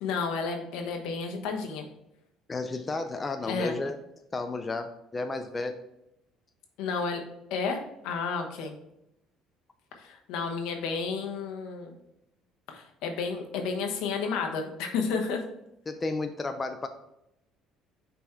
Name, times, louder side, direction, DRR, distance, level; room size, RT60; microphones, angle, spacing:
voice 1, 0.0-1.9 3.5-3.7 6.8-7.2 7.5-8.7 10.0-11.9 12.7-15.4, left 5 dB, 80° left, 3 dB, 1.1 m, -31 dB
voice 2, 2.5-4.0 4.3-5.8 8.6-8.7 15.9-16.9, left 3 dB, 25° left, 7 dB, 0.5 m, -32 dB
5.8 x 4.1 x 4.4 m, 0.83 s
cardioid pair, 105°, 0 cm